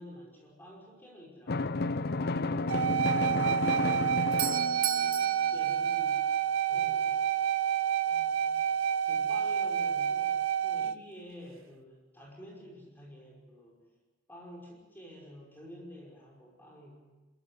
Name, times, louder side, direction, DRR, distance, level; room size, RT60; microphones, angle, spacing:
voice 1, 0.0-1.8 5.5-6.3 6.7-7.3 9.0-10.4 10.7-13.8 14.3-17.2, equal, 10° left, -2 dB, 5.6 m, -49 dB
Drum, 1.5-5.3, left 3 dB, 55° left, 0.6 m, -31 dB
voice 2, 2.3-3.7 4.2-5.7 6.7-7.1 8.1-8.9 9.2-9.4 10.6-10.9, right 1 dB, 20° right, -3 dB, 5.7 m, -56 dB
sound 1, 2.7-10.9, right 9 dB, 85° right, 0.7 m, -29 dB
Doorbell, 4.0-6.8, right 11 dB, 45° right, 1.1 m, -36 dB
27.0 x 15.0 x 8.3 m, 1.2 s
head